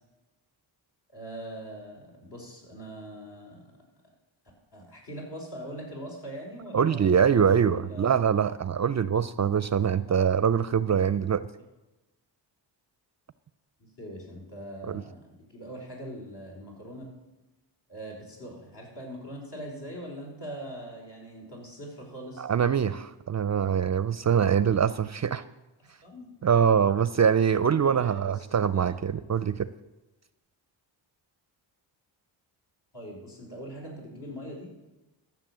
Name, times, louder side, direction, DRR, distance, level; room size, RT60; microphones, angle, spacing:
voice 1, 1.1-3.6 4.7-8.2 10.1-10.3 13.8-17.1 17.9-22.4 25.8-26.4 27.8-28.4 28.7-28.9 32.9-34.7, equal, 55° left, -1 dB, 5.1 m, -42 dB
voice 2, 6.7-11.5 14.9-15.0 22.4-25.4 26.4-29.7, right 7 dB, 35° right, 16 dB, 0.5 m, -24 dB
13.0 x 7.2 x 7.5 m, 1.0 s
cardioid pair, 70°, 47 cm